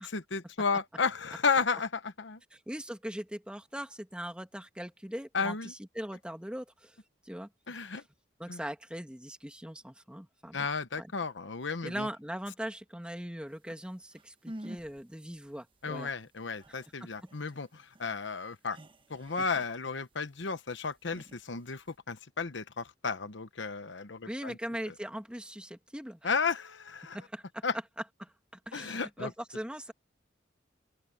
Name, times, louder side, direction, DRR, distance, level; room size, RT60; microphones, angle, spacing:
voice 1, 0.0-2.4 5.3-5.7 7.7-8.0 8.5-8.6 10.5-12.1 15.8-18.8 19.1-24.6 26.2-27.2 27.6-27.7 28.7-29.3, left 5 dB, 80° left, 1.1 m, -33 dB
voice 2, 2.5-7.0 7.2-7.5 7.9-8.0 8.4-10.7 11.0-11.1 11.8-16.1 16.7-17.1 24.2-26.3 27.1-27.6 28.2-28.3 28.7-29.9, equal, 5° right, 2.2 m, -40 dB
sound 1, 13.8-13.9 14.1-15.0 15.3-15.4 15.8-20.4 20.9-22.0, right 1 dB, 30° right, 1.1 m, -48 dB
open air
head